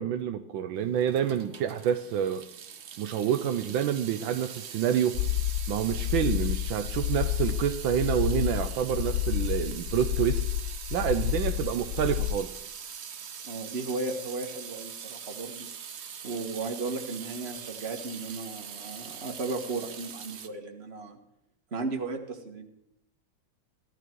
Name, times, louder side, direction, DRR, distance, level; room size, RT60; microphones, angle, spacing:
voice 1, 0.0-2.4 3.0-5.2 5.7-10.4 10.9-12.5, right 9 dB, 75° right, 8 dB, 1.4 m, -28 dB
Water tap faucet / Sink (filling or washing) / Drip, 0.9-20.5, right 7 dB, 60° right, 0.7 m, -42 dB
sound 1, 5.1-12.3, left 12 dB, 65° left, 0.9 m, -29 dB
voice 2, 13.4-15.7 16.2-21.2 21.7-22.7, right 3 dB, 35° right, 3 dB, 1.8 m, -35 dB
16.5 x 13.0 x 4.6 m, 0.78 s
omnidirectional pair, 2.2 m